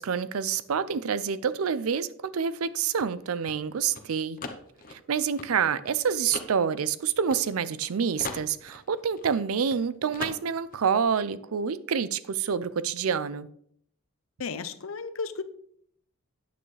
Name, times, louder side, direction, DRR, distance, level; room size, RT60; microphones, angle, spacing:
voice 1, 0.0-4.4 4.9-13.5, right 7 dB, 80° right, 17 dB, 0.5 m, -27 dB
sound 1, 2.6-7.9 8.2-9.8 10.1-10.8, left 4 dB, 40° left, 0.9 m, -41 dB
voice 2, 14.4-15.4, left 5 dB, 70° left, 12 dB, 0.7 m, -34 dB
9.4 x 8.6 x 3.3 m, 0.66 s
head